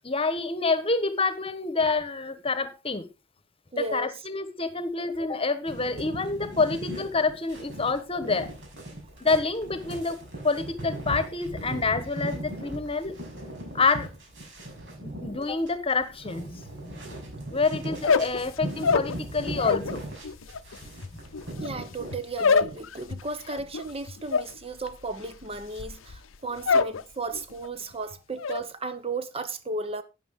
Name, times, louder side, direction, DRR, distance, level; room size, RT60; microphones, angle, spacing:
voice 1, 0.0-3.1 3.8-8.5 9.2-13.1 13.7-14.1 15.0-17.0 17.5-20.0, left 3 dB, 30° left, 1.3 m, -27 dB
voice 2, 3.7-4.2 21.6-30.0, right 3 dB, 30° right, 1.0 m, -35 dB
sound 1, 5.7-22.8, right 1 dB, 65° right, 5.8 m, -38 dB
sound 2, 17.9-19.9 20.2-27.0 27.3-27.8 28.1-28.6, left 5 dB, 80° left, 0.7 m, -26 dB
12.5 x 9.7 x 3.7 m
head